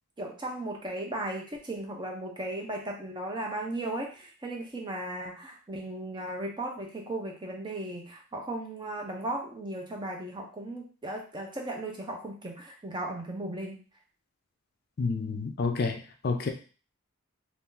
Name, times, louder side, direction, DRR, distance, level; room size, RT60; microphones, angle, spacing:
voice 1, 0.2-13.8, right 1 dB, 20° right, 1 dB, 0.6 m, -36 dB
voice 2, 15.0-16.5, left 4 dB, 45° left, 4 dB, 0.4 m, -29 dB
2.6 x 2.5 x 3.7 m, 0.37 s
head